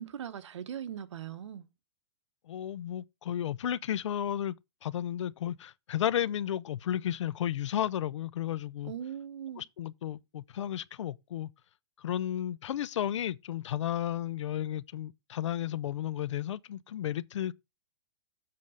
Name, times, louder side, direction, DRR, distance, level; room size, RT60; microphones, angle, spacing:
voice 1, 0.0-1.6 8.8-9.6, right 9 dB, 80° right, 1.1 m, -40 dB
voice 2, 2.5-4.6 4.8-8.9 9.6-11.5 12.0-17.5, left 11 dB, 85° left, 0.5 m, -33 dB
7.6 x 3.5 x 6.3 m
hypercardioid pair, 165°, 15 cm